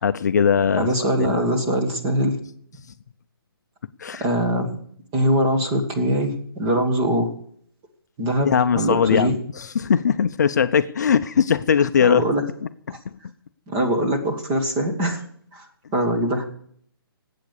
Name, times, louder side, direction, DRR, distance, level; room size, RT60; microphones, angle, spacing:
voice 1, 0.0-1.4 4.0-4.3 8.4-12.2 12.9-13.0, left 7 dB, 45° left, 11 dB, 0.6 m, -20 dB
voice 2, 0.7-2.4 4.2-4.7 5.1-7.3 8.2-9.4 12.0-12.4 12.9-13.0 13.7-15.2 15.5-16.4, right 1 dB, 15° right, 3 dB, 1.6 m, -22 dB
19.0 x 8.5 x 6.6 m, 0.63 s
hypercardioid pair, 165°, 13 cm